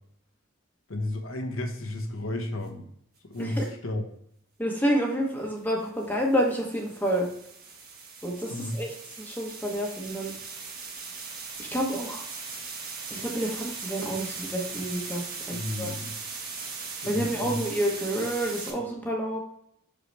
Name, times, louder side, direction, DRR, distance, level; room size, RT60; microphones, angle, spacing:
voice 1, 0.9-2.9 3.2-4.0 8.5-8.8 15.5-16.2 17.0-17.6, left 1 dB, 80° left, 3 dB, 1.1 m, -33 dB
voice 2, 3.4-3.7 4.6-7.3 8.2-10.3 11.1-11.2 11.6-12.2 13.1-15.9 17.0-19.4, equal, 10° left, -1 dB, 1.0 m, -29 dB
sound 1, 3.4-3.7 5.8-18.7, right 4 dB, 45° right, 1.3 m, -39 dB
6.5 x 5.1 x 3.3 m, 0.70 s
head